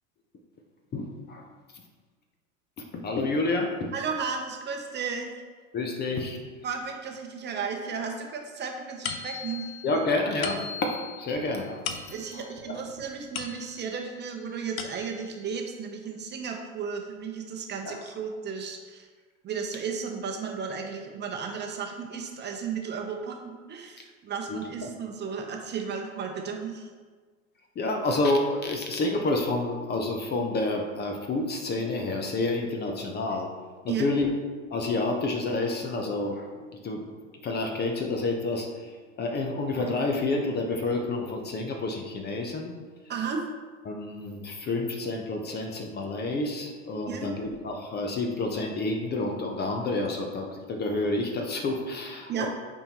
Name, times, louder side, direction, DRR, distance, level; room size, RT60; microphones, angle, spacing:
voice 1, 0.9-1.5 2.8-3.9 5.7-6.4 9.8-11.9 12.3-12.8 17.9-18.0 24.5-24.9 27.8-33.5 33.8-34.3 34.7-36.5 36.8-37.1 37.4-38.9 39.2-42.7 43.9-52.5, left 2 dB, 25° left, 3 dB, 0.8 m, -29 dB
voice 2, 3.9-5.3 6.6-9.7 12.1-19.1 19.4-26.9 33.9-34.1 43.1-43.4 47.1-47.3 52.3-52.5, right 6 dB, 25° right, 2 dB, 0.8 m, -34 dB
sound 1, 9.0-14.0 14.5-15.4, left 7 dB, 75° left, 0.7 m, -39 dB
8.6 x 4.6 x 2.9 m, 1.5 s
hypercardioid pair, 90°, 41 cm